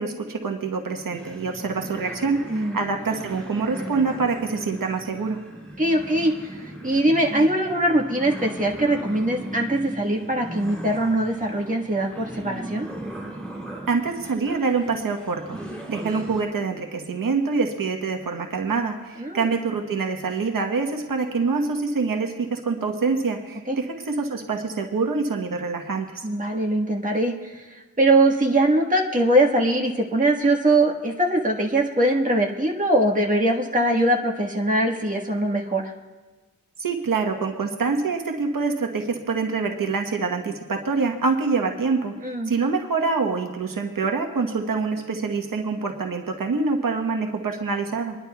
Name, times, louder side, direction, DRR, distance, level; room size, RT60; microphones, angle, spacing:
voice 1, 0.0-5.4 13.9-15.6 15.9-26.2 36.8-48.2, right 4 dB, 70° right, 3 dB, 1.1 m, -25 dB
sound 1, 1.1-16.4, right 1 dB, 5° left, 3.1 m, -38 dB
voice 2, 5.8-12.9 19.2-19.5 23.7-23.8 26.2-27.6 28.0-35.9 42.2-42.5, right 1 dB, 20° right, 0 dB, 1.5 m, -22 dB
25.5 x 11.0 x 2.3 m, 1.2 s
wide cardioid pair, 90°, 35 cm